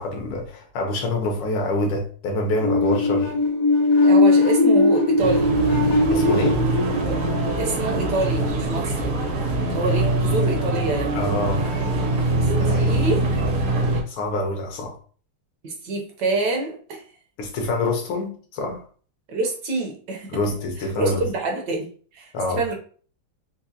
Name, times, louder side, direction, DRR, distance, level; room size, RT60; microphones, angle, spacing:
voice 1, 0.0-3.3 6.1-6.6 11.1-11.7 12.6-13.1 14.1-14.9 17.4-18.8 20.3-21.2 22.3-22.6, left 2 dB, 75° left, 1.8 m, -26 dB
sound 1, 2.6-8.3, left 2 dB, 55° left, 1.0 m, -19 dB
voice 2, 4.0-5.5 7.6-9.2 9.7-11.2 12.4-13.3 15.6-17.0 19.3-20.3 21.0-21.9 22.1-22.7, right 3 dB, 60° right, 1.2 m, -26 dB
sound 2, 5.2-14.0, right 2 dB, 80° right, 1.9 m, -23 dB
4.8 x 2.2 x 2.7 m
omnidirectional pair, 2.4 m